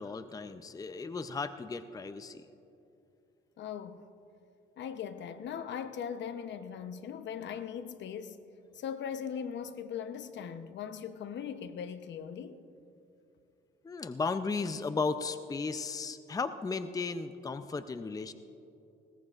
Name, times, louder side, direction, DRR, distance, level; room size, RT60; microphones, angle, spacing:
voice 1, 0.0-2.4 13.8-18.3, left 4 dB, 20° left, 0.5 m, -35 dB
voice 2, 3.6-4.1 4.8-8.4 8.7-12.6, left 8 dB, 65° left, 0.8 m, -39 dB
21.0 x 18.0 x 2.5 m
cardioid pair, 90°, 20 cm